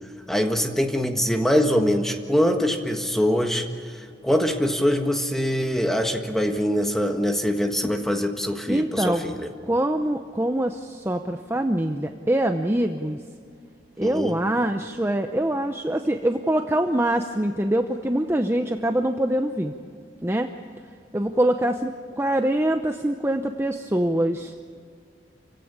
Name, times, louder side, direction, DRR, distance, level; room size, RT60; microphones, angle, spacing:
voice 1, 0.3-9.5 14.0-14.4, equal, ahead, 4 dB, 1.6 m, -23 dB
voice 2, 8.7-9.2 9.7-13.2 14.0-19.7 20.2-20.5 21.1-24.5, right 1 dB, 15° right, 6 dB, 0.7 m, -24 dB
28.0 x 16.0 x 8.7 m, 2.2 s
head